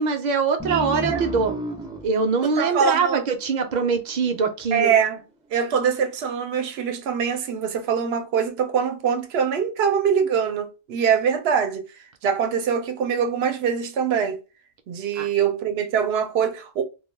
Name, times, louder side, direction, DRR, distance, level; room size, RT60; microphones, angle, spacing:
voice 1, 0.0-1.5 2.0-4.9 15.2-15.3, right 5 dB, 55° right, 0.6 m, -23 dB
sound 1, 0.6-3.8, right 2 dB, 5° right, 0.3 m, -32 dB
voice 2, 0.7-1.2 2.4-3.2 4.7-5.2 5.5-11.9 12.2-14.4 14.9-16.8, right 7 dB, 90° right, 0.8 m, -23 dB
2.3 x 2.2 x 3.1 m
omnidirectional pair, 1.0 m